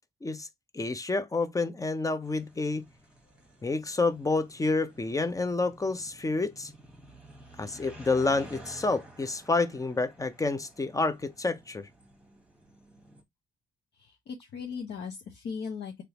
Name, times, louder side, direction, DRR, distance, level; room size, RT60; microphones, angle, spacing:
voice 1, 0.7-2.9 3.6-6.7 7.6-11.9, left 3 dB, 15° left, 0.5 m, -29 dB
sound 1, 2.2-13.2, right 1 dB, 5° right, 1.2 m, -52 dB
voice 2, 14.0-16.0, left 6 dB, 60° left, 0.8 m, -38 dB
3.3 x 2.9 x 2.8 m
cardioid pair, 90°, 20 cm